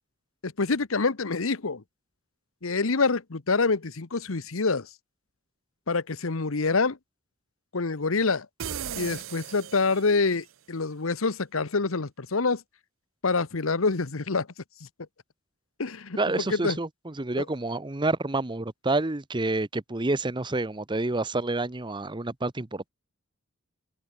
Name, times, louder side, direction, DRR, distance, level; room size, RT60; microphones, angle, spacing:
voice 1, 0.4-1.8 2.6-4.9 5.9-7.0 7.7-8.5 9.0-12.6 13.2-14.5 15.8-16.2 16.5-16.8 17.4-17.5, left 4 dB, 85° left, 1.1 m, -26 dB
sound 1, 8.6-10.4, right 8 dB, 70° right, 0.7 m, -37 dB
voice 2, 16.2-22.9, right 2 dB, 25° right, 0.9 m, -28 dB
head